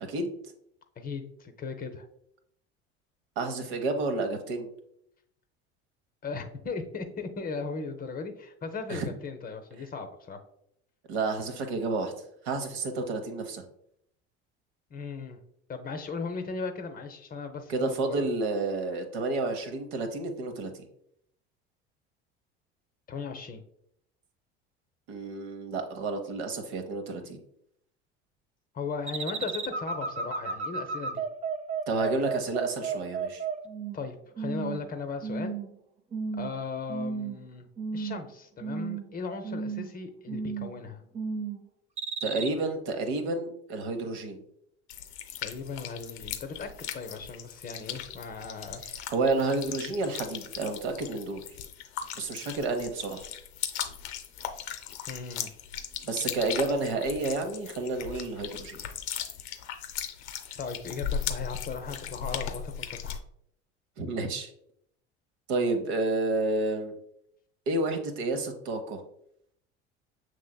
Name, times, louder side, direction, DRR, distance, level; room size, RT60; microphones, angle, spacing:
voice 1, 1.0-2.0 6.2-10.4 14.9-15.4 15.7-18.2 23.1-23.6 28.7-31.2 33.9-35.6 36.3-37.6 37.9-41.0 45.4-48.8 55.1-55.5 60.6-63.2, left 4 dB, 25° left, 7 dB, 0.6 m, -37 dB
voice 2, 3.4-4.7 8.9-9.1 11.1-12.1 12.4-13.6 17.7-20.7 25.1-27.4 31.9-33.4 42.2-44.4 49.1-51.4 52.2-53.3 56.0-58.8 64.0-64.5 65.5-66.9 67.7-69.0, right 3 dB, 70° right, 6 dB, 0.8 m, -30 dB
sound 1, 29.1-34.0 34.4-34.8 35.2-35.7 36.1-36.5 36.9-37.4 37.8-38.3 38.6-39.1 39.4-39.9 40.3-40.8 41.1-41.6 42.0-42.5, right 5 dB, 20° right, 0.4 m, -33 dB
sound 2, 44.9-63.2, left 9 dB, 70° left, 0.6 m, -38 dB
6.2 x 3.1 x 2.2 m, 0.72 s
hypercardioid pair, 70°, 33 cm